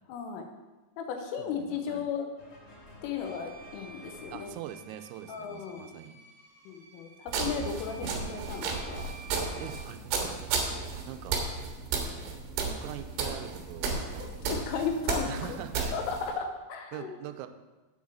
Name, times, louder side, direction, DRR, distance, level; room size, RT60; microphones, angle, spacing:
voice 1, 0.1-0.5 1.0-2.3 3.0-4.6 5.3-5.9 6.7-9.1 14.2-15.6 15.9-17.1, left 6 dB, 85° left, 4 dB, 3.5 m, -35 dB
voice 2, 1.4-2.1 4.3-6.2 9.6-10.6 11.1-11.4 12.7-14.2 15.3-16.0 16.9-17.5, right 12 dB, 90° right, 8 dB, 3.3 m, -43 dB
sound 1, 2.4-5.9, left 1 dB, 35° left, 3.2 m, -54 dB
Bowed string instrument, 3.2-10.0, right 3 dB, 50° right, 3.7 m, -52 dB
sound 2, 7.3-16.3, right 4 dB, 65° right, 3.2 m, -33 dB
8.5 x 6.4 x 7.2 m, 1.2 s
omnidirectional pair, 5.9 m